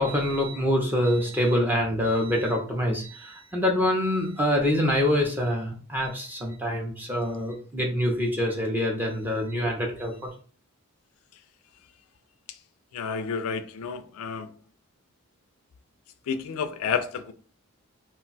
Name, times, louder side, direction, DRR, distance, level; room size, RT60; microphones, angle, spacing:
voice 1, 0.0-10.1, left 1 dB, 10° right, 0.5 m, -25 dB
voice 2, 12.9-14.5 16.3-17.3, left 6 dB, 70° left, 0.4 m, -30 dB
2.4 x 2.2 x 3.9 m
head